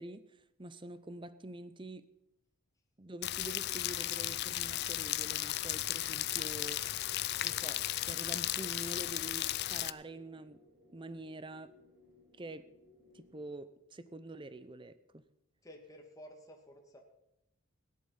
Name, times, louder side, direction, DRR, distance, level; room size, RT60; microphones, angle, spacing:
voice 1, 0.0-2.0 3.0-6.8 7.4-7.8 8.1-10.6 10.9-11.7 12.4-12.7 13.1-15.2, right 2 dB, 20° right, 14 dB, 0.6 m, -46 dB
Rain, 3.2-9.9, left 14 dB, 50° left, 0.4 m, -35 dB
sound 1, 3.5-13.4, left 2 dB, 60° right, 6.7 m, -62 dB
voice 2, 15.6-17.0, equal, 15° left, 2 dB, 1.9 m, -53 dB
17.0 x 11.0 x 5.7 m, 0.83 s
head